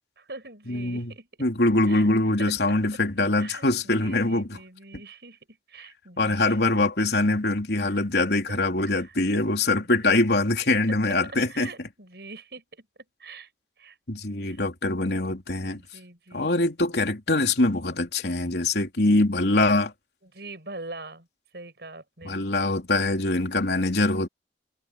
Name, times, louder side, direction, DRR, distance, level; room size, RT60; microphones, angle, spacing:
voice 1, 0.2-1.3 1.9-2.1 2.4-2.8 3.2-5.4 5.7-6.6 7.8-9.1 9.6-10.1 10.7-10.8 11.5-12.9 13.2-13.5 13.8-14.0 14.4-14.6 15.5-16.6 20.3-21.3 21.5-22.4, right 3 dB, 65° right, 6.7 m, -44 dB
voice 2, 0.7-1.1 1.4-4.6 6.2-11.7 14.1-15.8 16.3-19.9 22.2-24.3, left 2 dB, 70° left, 3.2 m, -23 dB
head